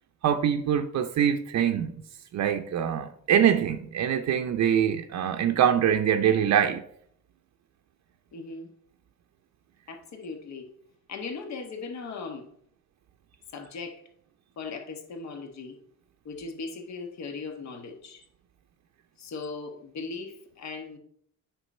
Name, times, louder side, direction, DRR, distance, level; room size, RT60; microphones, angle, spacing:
voice 1, 0.2-1.9 2.3-6.8, right 9 dB, 65° right, 0.6 m, -24 dB
voice 2, 8.3-8.7 9.9-10.7 11.1-12.5 13.5-14.0 14.6-15.8 16.2-18.2 19.2-21.0, left 4 dB, 65° left, 1.4 m, -38 dB
7.9 x 5.8 x 4.3 m
cardioid pair, 90°, 30 cm